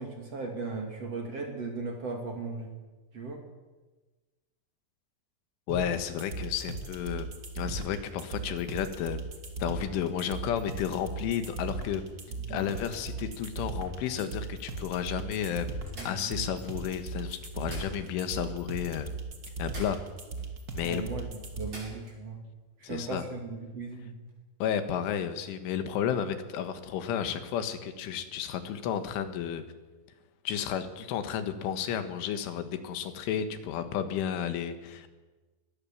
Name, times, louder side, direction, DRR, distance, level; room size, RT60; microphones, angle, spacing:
voice 1, 0.0-2.7 3.1-3.4 12.5-12.8 16.0-16.5 20.8-21.3 21.6-22.4 22.8-24.2, right 3 dB, 40° right, 3 dB, 2.8 m, -37 dB
voice 2, 5.7-7.3 7.6-9.2 9.6-12.0 12.5-15.8 16.1-19.1 19.6-20.0 20.7-21.0 22.8-23.3 24.6-29.6 30.5-35.1, left 9 dB, 85° left, 9 dB, 4.0 m, -32 dB
sound 1, 5.7-21.7, right 3 dB, 65° right, 0.9 m, -38 dB
sound 2, 12.3-14.0 14.6-14.7 15.0-15.1 15.9-16.9 17.4-18.5 18.7-18.8 19.6-20.5 20.8-20.9 21.6-22.2 24.1-24.3, right 1 dB, 25° right, 8.7 m, -49 dB
22.5 x 19.5 x 7.4 m, 1.2 s
omnidirectional pair, 5.5 m